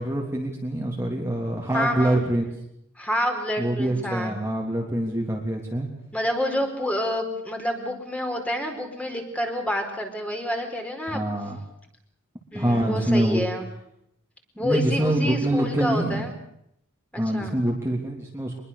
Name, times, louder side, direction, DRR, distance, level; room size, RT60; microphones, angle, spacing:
voice 1, 0.0-2.4 3.6-5.9 11.1-11.6 12.5-13.4 14.6-16.3 17.2-18.6, right 1 dB, 10° right, -1 dB, 3.2 m, -25 dB
voice 2, 1.7-2.2 3.0-4.3 6.1-11.2 12.5-13.6 14.6-16.3 17.1-17.5, equal, 5° left, 4 dB, 4.4 m, -28 dB
25.0 x 22.0 x 6.9 m, 0.75 s
head